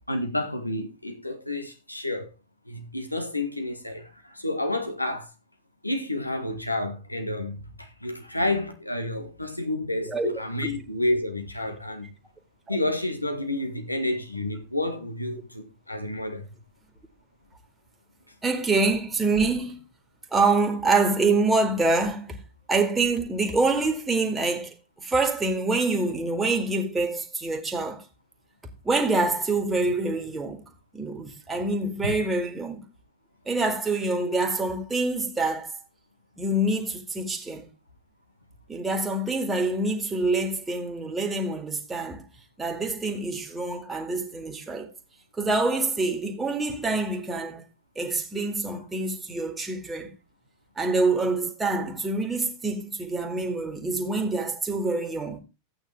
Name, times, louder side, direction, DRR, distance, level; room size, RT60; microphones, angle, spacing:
voice 1, 0.1-2.3 2.7-5.3 5.8-12.1 12.7-16.5 32.0-32.1, left 1 dB, 85° left, 1.7 m, -30 dB
voice 2, 10.0-10.4 12.7-12.8 18.4-19.8 20.3-22.4 22.7-28.0 28.8-30.6 30.9-32.8 33.5-35.7 36.4-37.7 38.7-42.2 42.6-44.9 45.4-47.6 48.0-50.1 50.8-55.4, right 3 dB, 10° right, 2.1 m, -26 dB
12.5 x 8.9 x 3.4 m
figure-of-eight pair, 90°, 0 cm